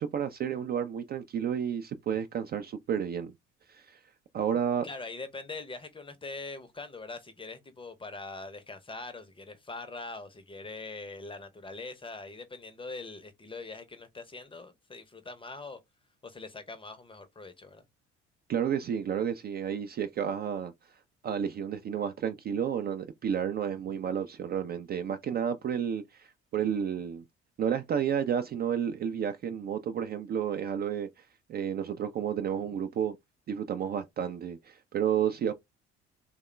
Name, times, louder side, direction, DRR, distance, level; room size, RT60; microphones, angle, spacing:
voice 1, 0.0-3.3 3.7-4.0 4.3-4.9 18.5-20.7 21.2-27.2 27.6-33.2 33.5-35.5, right 8 dB, 30° right, 0.4 m, -31 dB
voice 2, 4.8-15.8 16.2-17.9, left 3 dB, 15° left, 0.7 m, -42 dB
3.5 x 2.2 x 3.1 m
figure-of-eight pair, 50°, 34 cm